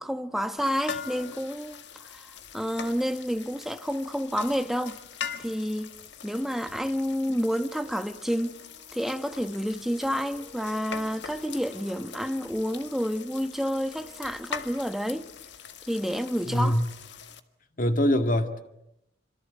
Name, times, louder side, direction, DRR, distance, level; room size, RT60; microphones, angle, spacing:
voice 1, 0.0-5.0 5.4-5.9 6.2-8.6 8.9-15.3 15.9-16.8, equal, ahead, 1.2 m, -29 dB
sound 1, 0.6-17.4, left 6 dB, 75° left, 1.7 m, -42 dB
Wind instrument woodwind instrument, 7.2-14.9, equal, 35° right, 3.4 m, -54 dB
voice 2, 16.4-16.9 17.8-18.6, equal, 50° left, 2.2 m, -23 dB
27.5 x 26.5 x 8.2 m
head